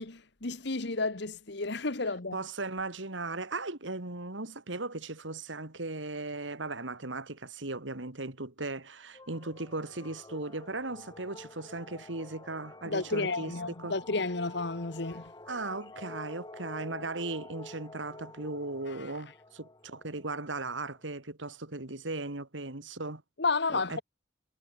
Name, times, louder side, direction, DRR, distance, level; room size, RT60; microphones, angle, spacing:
voice 1, 0.0-2.4 12.8-15.2 23.4-24.0, left 3 dB, 65° left, 1.5 m, -32 dB
voice 2, 2.3-13.5 13.8-14.0 15.5-23.2 23.7-24.0, right 2 dB, 80° right, 2.7 m, -37 dB
sound 1, 9.1-21.0, left 2 dB, 20° left, 3.5 m, -49 dB
head